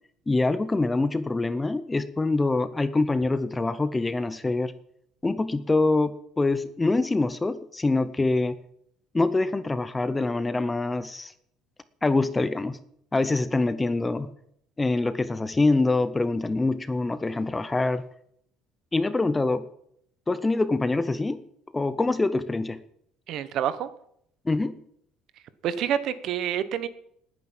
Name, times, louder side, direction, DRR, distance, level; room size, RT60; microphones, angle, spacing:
voice 1, 0.3-4.7 5.2-8.5 9.1-11.3 12.0-12.8 13.1-14.3 14.8-18.0 18.9-19.7 20.3-21.4 21.7-22.8 24.5-24.8, left 2 dB, 10° left, 14 dB, 0.6 m, -25 dB
voice 2, 23.3-23.9 25.6-26.9, right 9 dB, 50° right, 15 dB, 1.1 m, -27 dB
19.5 x 9.6 x 7.5 m, 0.71 s
cardioid pair, 170°, 0 cm